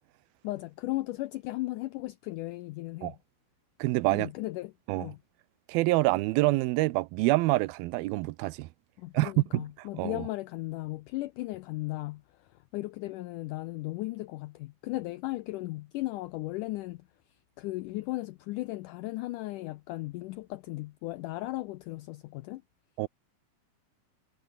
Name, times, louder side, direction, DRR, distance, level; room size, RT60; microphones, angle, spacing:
voice 1, 0.4-3.2 4.1-5.2 9.0-22.6, left 19 dB, 85° left, 1.8 m, -36 dB
voice 2, 3.8-4.3 4.9-5.1 5.7-8.7 9.1-9.6 10.0-10.2 23.0-23.1, right 20 dB, 85° right, 2.5 m, -26 dB
omnidirectional pair, 4.3 m